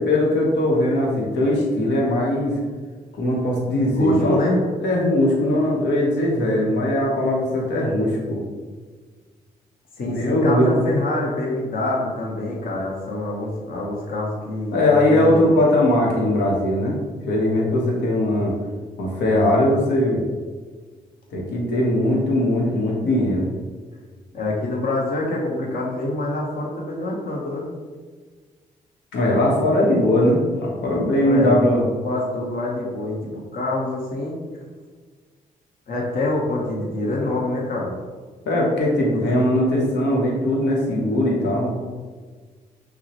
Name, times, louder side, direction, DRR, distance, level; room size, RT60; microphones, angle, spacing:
voice 1, 0.0-2.5 3.2-4.4 4.8-8.4 10.1-10.7 14.7-17.0 17.3-18.5 19.0-20.2 21.3-23.5 29.1-31.8 38.5-41.8, left 1 dB, 75° left, -2 dB, 0.9 m, -20 dB
voice 2, 3.9-4.6 10.0-15.5 24.3-27.7 31.1-31.6 32.0-34.4 35.9-37.9, left 1 dB, 55° left, -3 dB, 1.0 m, -25 dB
5.9 x 2.1 x 3.0 m, 1.5 s
supercardioid pair, 45°, 18 cm